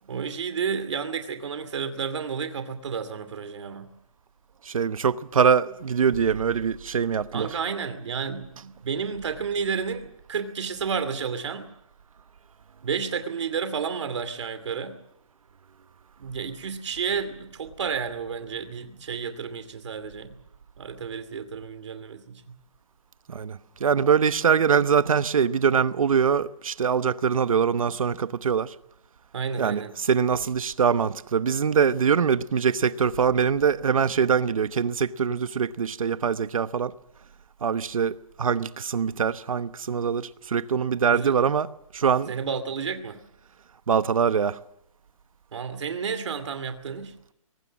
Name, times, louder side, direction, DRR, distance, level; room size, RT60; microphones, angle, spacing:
voice 1, 0.0-3.9 7.3-11.7 12.8-15.0 16.2-20.4 20.8-22.6 29.3-29.9 41.1-41.4 42.3-43.2 45.5-47.1, right 6 dB, 55° right, 2.6 m, -31 dB
voice 2, 4.6-7.5 23.3-28.7 29.6-36.9 37.6-41.7 41.9-42.3 43.9-44.6, right 6 dB, 70° right, 1.0 m, -23 dB
22.5 x 19.0 x 7.4 m
hypercardioid pair, 175°, 18 cm